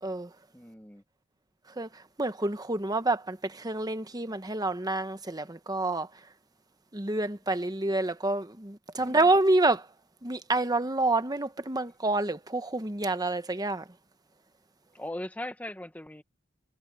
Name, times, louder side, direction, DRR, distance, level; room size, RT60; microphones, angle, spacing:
voice 1, 0.5-1.0 9.0-9.3 14.9-16.2, left 1 dB, 10° left, 1.6 m, -39 dB
voice 2, 1.8-6.1 6.9-9.9 10.2-13.8, right 2 dB, 20° right, 1.1 m, -28 dB
head